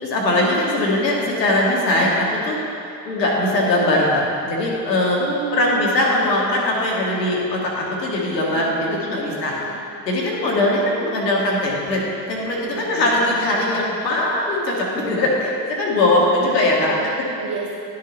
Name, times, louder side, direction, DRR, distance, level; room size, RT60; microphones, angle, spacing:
voice 1, 0.0-2.6 3.1-5.2 5.5-9.5 10.1-12.0 12.3-16.9, left 1 dB, 85° left, -3 dB, 1.8 m, -20 dB
voice 2, 5.2-5.9 8.5-9.8 12.6-13.8 16.1-16.5 16.8-17.7, right 5 dB, 45° right, -4 dB, 1.3 m, -32 dB
10.5 x 6.6 x 4.0 m, 2.6 s
hypercardioid pair, 75°, 48 cm